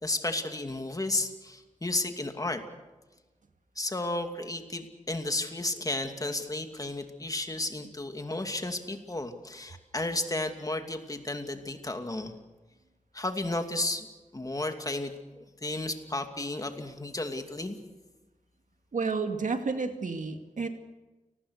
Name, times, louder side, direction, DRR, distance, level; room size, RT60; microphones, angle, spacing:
voice 1, 0.0-2.6 3.8-12.4 13.1-14.1 14.3-17.8, left 2 dB, 25° left, 6 dB, 2.6 m, -33 dB
voice 2, 18.9-20.7, right 4 dB, 75° right, 6 dB, 2.3 m, -31 dB
29.5 x 20.0 x 6.6 m, 1.2 s
wide cardioid pair, 95°, 13 cm